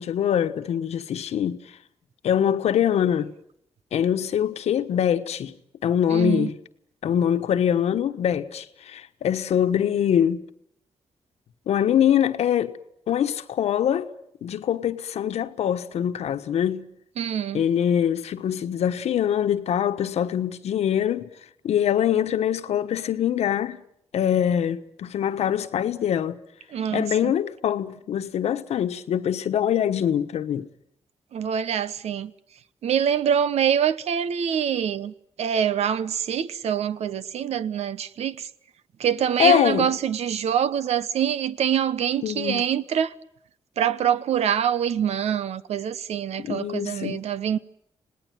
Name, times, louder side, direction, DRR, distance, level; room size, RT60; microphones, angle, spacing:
voice 1, 0.0-1.6 2.2-3.3 3.9-5.5 5.8-6.5 7.0-10.4 11.7-12.8 13.1-14.1 14.4-16.9 17.5-21.3 21.6-23.8 24.1-26.4 26.9-30.7 39.4-39.9 42.2-42.6 46.4-47.2, left 9 dB, 85° left, 1.3 m, -23 dB
voice 2, 6.1-6.5 17.2-17.6 26.7-27.3 31.3-32.3 32.8-38.5 39.0-43.1 43.8-47.6, right 8 dB, 85° right, 1.0 m, -25 dB
27.0 x 19.0 x 9.2 m
cardioid pair, 80°, 11 cm